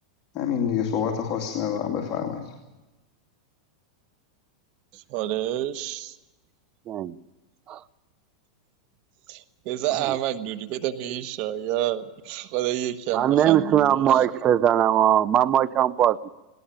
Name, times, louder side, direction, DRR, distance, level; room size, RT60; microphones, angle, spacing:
voice 1, 0.3-2.5, left 8 dB, 35° left, 2.7 m, -27 dB
voice 2, 4.9-6.2 9.3-14.5, right 13 dB, 45° right, 1.2 m, -29 dB
voice 3, 13.1-16.3, right 10 dB, 30° right, 0.7 m, -20 dB
19.0 x 18.5 x 9.0 m
supercardioid pair, 145°, 3 cm